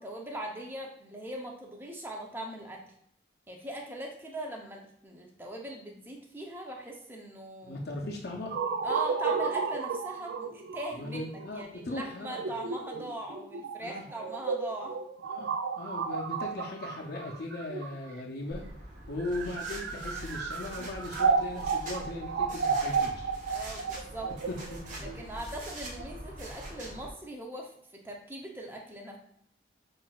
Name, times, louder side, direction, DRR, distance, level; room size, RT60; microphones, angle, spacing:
voice 1, 0.0-2.8 3.5-7.8 8.8-15.0 23.5-24.3 25.0-29.2, right 1 dB, 10° right, 0 dB, 0.6 m, -40 dB
voice 2, 7.6-8.6 10.9-12.5 13.8-14.1 15.3-18.6 19.1-23.3 24.7-25.2, left 2 dB, 55° left, -1 dB, 0.5 m, -38 dB
sound 1, 8.5-18.3 19.1-26.0, right 5 dB, 60° right, 0.3 m, -32 dB
sound 2, 18.5-27.1, right 1 dB, 40° right, 0.8 m, -43 dB
5.8 x 2.4 x 2.3 m, 0.71 s
head